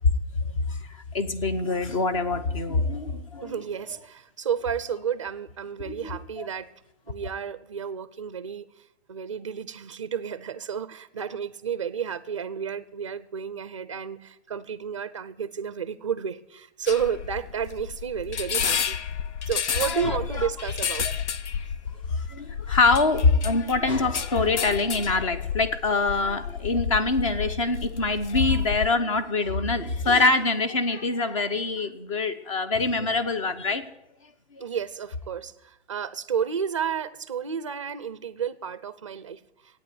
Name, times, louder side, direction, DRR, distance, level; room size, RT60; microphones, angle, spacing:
voice 1, 1.1-3.5 5.8-6.0 6.4-6.5 19.8-20.5 22.1-33.8, left 3 dB, 30° left, 10 dB, 0.9 m, -24 dB
voice 2, 3.4-6.7 7.1-8.7 9.1-19.0 19.5-21.1 34.6-39.4, right 7 dB, 30° right, 15 dB, 0.5 m, -31 dB
sound 1, 16.9-28.9, left 7 dB, 85° left, 0.9 m, -31 dB
14.5 x 9.4 x 9.4 m, 0.89 s
hypercardioid pair, 180°, 34 cm